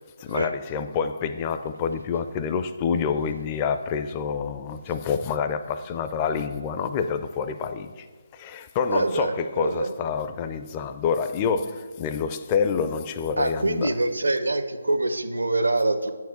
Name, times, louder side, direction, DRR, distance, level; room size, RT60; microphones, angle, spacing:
voice 1, 0.2-8.1 8.3-14.0, left 6 dB, 20° left, 0.4 m, -27 dB
voice 2, 8.9-9.9 13.4-16.1, right 2 dB, 70° right, 0.7 m, -25 dB
9.2 x 4.6 x 7.2 m
figure-of-eight pair, 145°, 0 cm